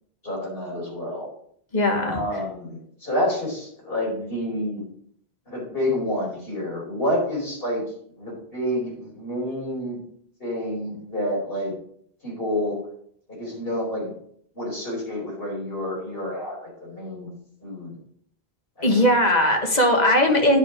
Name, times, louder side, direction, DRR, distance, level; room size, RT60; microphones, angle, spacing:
voice 1, 0.2-1.3 2.1-4.8 5.5-7.8 8.2-10.0 10.4-11.7 12.2-12.8 13.3-14.1 14.5-17.3 17.6-18.0 18.8-19.0, left 1 dB, 60° left, -4 dB, 4.8 m, -28 dB
voice 2, 1.7-2.2 18.8-20.6, left 1 dB, 40° left, 3 dB, 1.6 m, -19 dB
9.9 x 5.9 x 4.9 m, 0.66 s
omnidirectional pair, 1.1 m